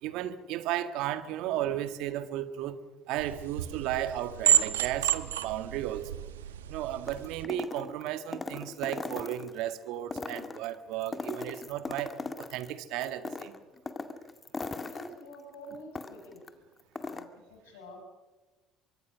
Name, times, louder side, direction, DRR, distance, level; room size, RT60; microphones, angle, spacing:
voice 1, 0.0-2.8 3.1-6.3 6.7-13.5, right 12 dB, 65° right, 11 dB, 1.7 m, -34 dB
sound 1, 3.2-7.4, right 10 dB, 85° right, 1.1 m, -30 dB
sound 2, 7.0-9.6 10.0-12.7 13.0-16.5 16.8-17.2, left 3 dB, 25° left, 2.1 m, -39 dB
voice 2, 14.9-16.4 16.9-18.0, equal, 80° left, 2 dB, 5.6 m, -48 dB
24.0 x 23.5 x 6.3 m, 1.2 s
hypercardioid pair, 60°, 0 cm